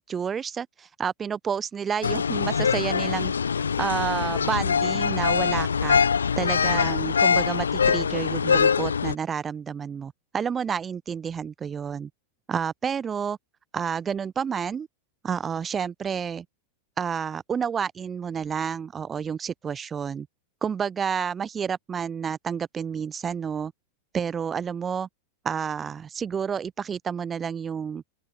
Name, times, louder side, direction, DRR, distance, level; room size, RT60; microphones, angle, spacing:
voice 1, 0.0-3.3 3.8-6.0 6.4-12.1 12.5-13.4 13.7-14.9 15.2-16.4 17.0-20.3 20.6-23.7 24.1-25.1 25.4-28.0, right 7 dB, 20° right, 1.6 m, -30 dB
sound 1, 2.0-9.1, left 6 dB, 70° left, 0.3 m, -23 dB
open air
figure-of-eight pair, 90°, 0 cm